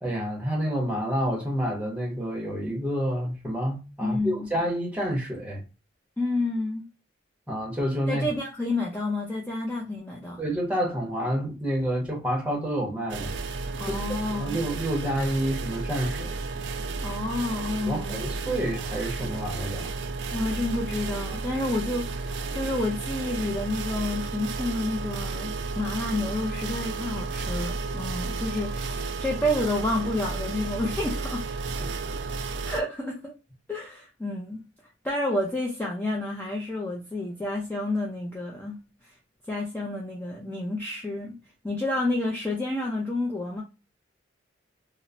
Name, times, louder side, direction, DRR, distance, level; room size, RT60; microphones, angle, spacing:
voice 1, 0.0-5.6 7.5-8.3 10.4-13.3 13.9-14.0 14.3-16.4 17.8-19.9 21.3-21.4 31.8-31.9, equal, 5° right, 0.9 m, -29 dB
voice 2, 4.0-4.5 6.2-6.9 8.1-10.4 13.8-14.6 17.0-18.2 20.3-31.5 32.6-33.3 33.7-34.7 35.0-39.2 39.5-41.3 41.6-43.6, left 2 dB, 10° left, 0.4 m, -30 dB
sound 1, 13.1-32.8, right 3 dB, 65° right, 0.3 m, -32 dB
3.0 x 2.0 x 2.4 m
head